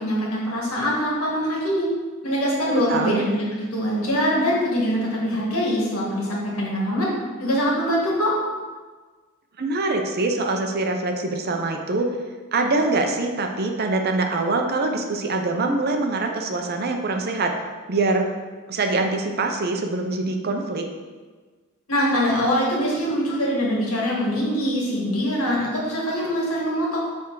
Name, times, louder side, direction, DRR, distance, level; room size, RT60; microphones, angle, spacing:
voice 1, 0.0-1.9 2.2-7.1 7.4-8.3 21.9-27.0, equal, 80° left, -4 dB, 1.8 m, -23 dB
voice 2, 2.7-3.2 9.6-12.1 12.5-17.5 17.9-18.3 18.7-20.9, right 3 dB, 45° right, 4 dB, 0.6 m, -24 dB
7.0 x 3.5 x 4.7 m, 1.4 s
head